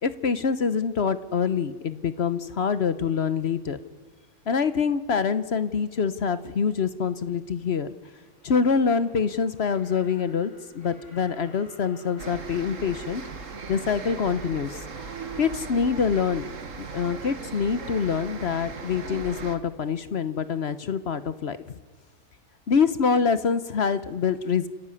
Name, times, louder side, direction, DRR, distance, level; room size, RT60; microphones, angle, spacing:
voice 1, 0.0-3.8 4.5-7.9 8.4-13.2 13.7-14.8 15.4-16.5 16.9-21.6 22.7-24.7, left 6 dB, 50° left, 13 dB, 1.0 m, -25 dB
sound 1, 8.0-16.9, left 1 dB, 85° left, 7.2 m, -52 dB
sound 2, 12.2-19.6, right 4 dB, 60° right, 1.9 m, -38 dB
28.0 x 15.0 x 9.6 m, 1.4 s
omnidirectional pair, 1.6 m